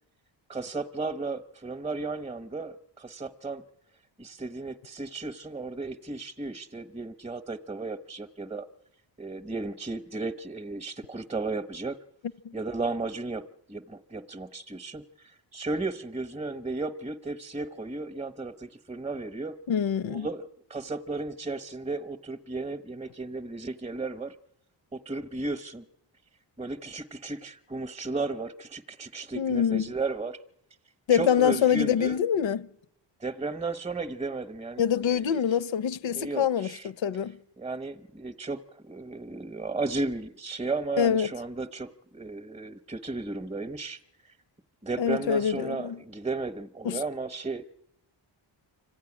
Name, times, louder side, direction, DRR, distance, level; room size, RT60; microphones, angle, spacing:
voice 1, 0.5-3.6 4.2-8.7 9.2-12.0 12.5-19.5 20.1-24.3 24.9-25.8 26.6-30.4 31.1-32.2 33.2-35.4 36.1-36.9 37.6-44.4 44.8-47.6, right 3 dB, 15° right, 0.9 m, -34 dB
voice 2, 19.7-20.3 29.3-29.9 31.1-32.7 34.8-37.4 41.0-41.3 45.0-46.0 46.8-47.0, left 8 dB, 70° left, 0.8 m, -25 dB
25.5 x 15.5 x 9.8 m
wide cardioid pair, 95°, 48 cm